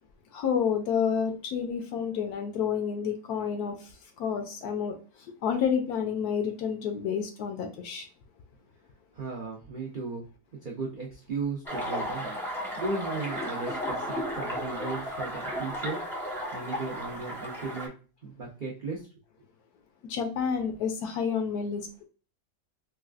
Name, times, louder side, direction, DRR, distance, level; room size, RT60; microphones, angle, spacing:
voice 1, 0.3-8.1 20.0-22.0, left 7 dB, 70° left, 1.0 m, -30 dB
voice 2, 9.1-10.3 10.6-16.0 16.5-17.9 18.2-19.1, right 4 dB, 70° right, 0.4 m, -36 dB
sound 1, 11.6-17.9, equal, ahead, 0.6 m, -34 dB
4.0 x 2.3 x 2.3 m
omnidirectional pair, 1.9 m